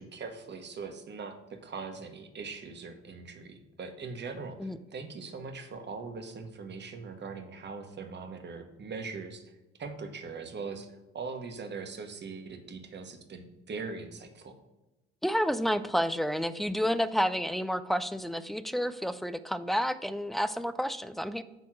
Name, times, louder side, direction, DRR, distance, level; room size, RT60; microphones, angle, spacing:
voice 1, 0.0-9.5 9.8-14.6, right 4 dB, 30° right, 6 dB, 1.3 m, -41 dB
voice 2, 15.2-21.4, equal, ahead, 13 dB, 0.4 m, -30 dB
9.1 x 3.5 x 6.2 m, 1.0 s
figure-of-eight pair, 60°, 33 cm